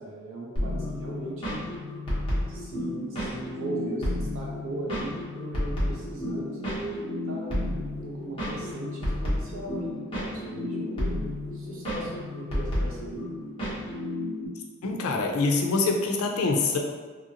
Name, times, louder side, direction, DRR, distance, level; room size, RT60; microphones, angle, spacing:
voice 1, 0.0-1.6 2.3-11.2 11.5-13.2, right 2 dB, 65° right, -4 dB, 0.7 m, -38 dB
sound 1, 0.6-14.5, left 1 dB, 25° left, 0.9 m, -32 dB
voice 2, 14.8-16.8, left 3 dB, 75° left, 2 dB, 0.4 m, -25 dB
2.8 x 2.6 x 2.7 m, 1.4 s
head